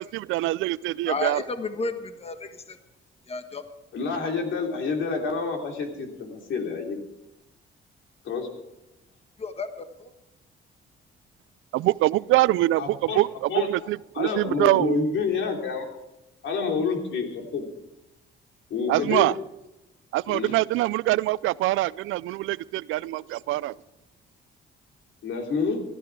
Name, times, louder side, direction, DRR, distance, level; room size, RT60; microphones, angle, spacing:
voice 1, 0.0-1.4 11.7-15.0 18.9-19.4 20.1-23.7, right 17 dB, 85° right, 0.4 m, -24 dB
voice 2, 1.1-2.8 3.3-3.6 9.4-10.1, left 3 dB, 30° left, 1.4 m, -32 dB
voice 3, 3.9-7.0 8.2-8.5 12.8-13.2 13.5-13.7 14.1-15.8 16.4-17.7 18.7-19.3 20.3-20.5 25.2-25.8, left 4 dB, 75° left, 3.3 m, -28 dB
17.5 x 13.0 x 4.8 m
cardioid pair, 90°, 20 cm